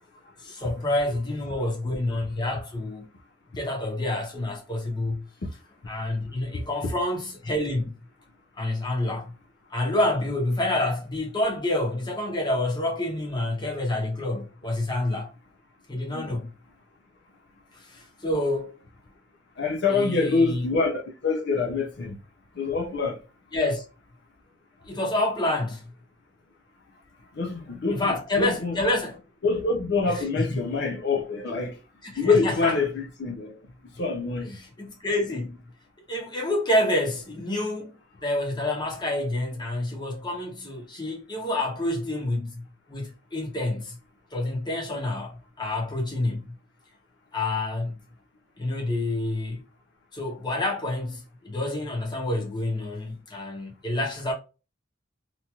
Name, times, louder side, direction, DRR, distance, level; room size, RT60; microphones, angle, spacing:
voice 1, 0.4-3.1 3.6-5.2 5.9-7.9 8.6-9.3 9.7-15.3 15.9-16.5 17.7-18.7 19.9-20.7 23.5-23.8 24.8-25.9 27.9-29.2 30.1-30.6 32.0-32.8 34.5-35.6 36.1-37.9 38.2-44.0 44.3-46.5 47.3-48.0 48.6-49.6 50.1-54.3, left 1 dB, 20° left, 1.0 m, -28 dB
voice 2, 19.6-22.2 22.6-23.2 27.3-28.8 29.4-31.8 32.2-33.5 34.0-34.6, left 4 dB, 60° left, 0.6 m, -25 dB
2.9 x 2.7 x 2.3 m
head